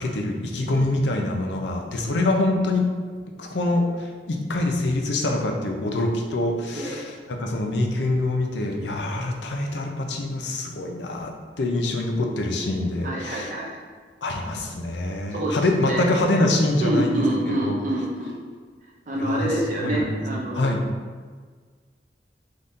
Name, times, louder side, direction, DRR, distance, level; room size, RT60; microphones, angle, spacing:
voice 1, 0.0-2.8 3.4-13.5 14.2-17.8 19.2-19.5 19.8-20.8, left 2 dB, 80° left, 2 dB, 0.5 m, -25 dB
voice 2, 13.0-13.8 15.3-16.1 16.8-18.4 19.1-20.8, right 1 dB, 45° right, -3 dB, 0.6 m, -26 dB
3.9 x 2.7 x 3.5 m, 1.5 s
head